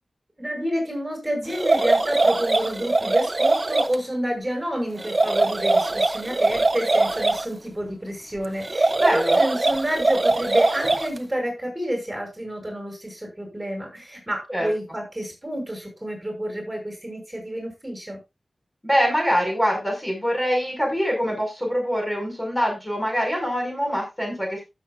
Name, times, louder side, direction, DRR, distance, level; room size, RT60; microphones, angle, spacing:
voice 1, 0.4-18.2, right 1 dB, 20° right, 2 dB, 5.8 m, -29 dB
sound 1, 1.5-3.9 5.0-7.4 8.6-11.2, right 2 dB, 35° right, 0.9 m, -21 dB
voice 2, 9.0-9.4 14.5-14.7 18.8-24.6, equal, 10° left, 0 dB, 5.0 m, -24 dB
15.5 x 7.2 x 2.4 m, 0.24 s
wide cardioid pair, 75°, 0 cm